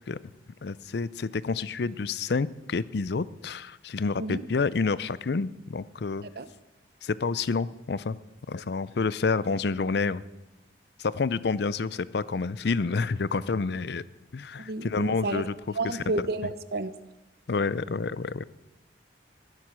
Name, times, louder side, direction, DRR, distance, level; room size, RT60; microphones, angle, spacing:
voice 1, 0.6-6.2 7.0-8.2 8.5-10.2 11.0-14.0 14.3-15.5 15.8-16.0 17.5-18.4, left 4 dB, 60° left, 18 dB, 0.5 m, -29 dB
voice 2, 14.6-15.4 15.8-16.9, right 2 dB, 55° right, 13 dB, 0.8 m, -31 dB
20.5 x 7.6 x 6.3 m, 0.99 s
head